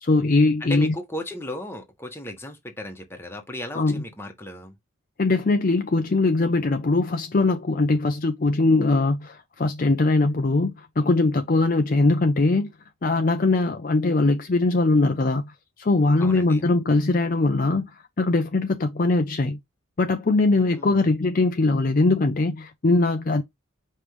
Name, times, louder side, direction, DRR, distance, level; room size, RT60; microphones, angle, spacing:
voice 1, 0.0-0.9 3.8-4.0 5.2-12.7 13.0-15.5 15.8-17.9 18.2-19.6 20.0-23.4, left 2 dB, 40° left, 0.5 m, -21 dB
voice 2, 0.6-4.7 16.2-16.6 20.5-21.1, left 1 dB, 10° left, 1.1 m, -36 dB
5.3 x 3.2 x 3.1 m
head